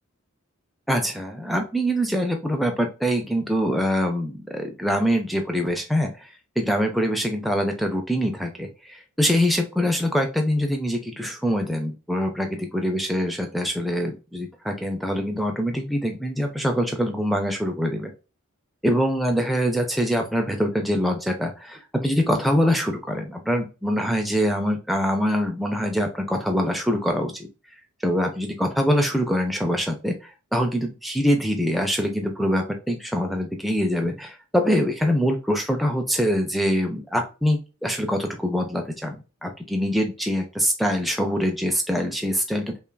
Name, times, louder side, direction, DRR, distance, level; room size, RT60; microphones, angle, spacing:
voice 1, 0.9-18.1 18.8-27.5 28.0-42.8, equal, ahead, 2 dB, 0.4 m, -24 dB
5.5 x 2.4 x 2.2 m, 0.31 s
head